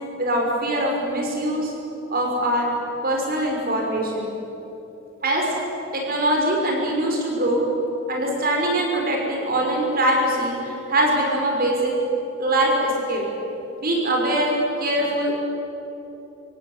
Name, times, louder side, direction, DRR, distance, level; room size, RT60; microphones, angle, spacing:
voice 1, 0.2-1.7 2.1-2.7 3.0-4.3 5.2-5.5 5.9-7.6 8.1-11.9 12.4-13.3 13.8-15.4, right 1 dB, 45° right, 0 dB, 6.0 m, -22 dB
26.0 x 16.5 x 9.7 m, 2.9 s
head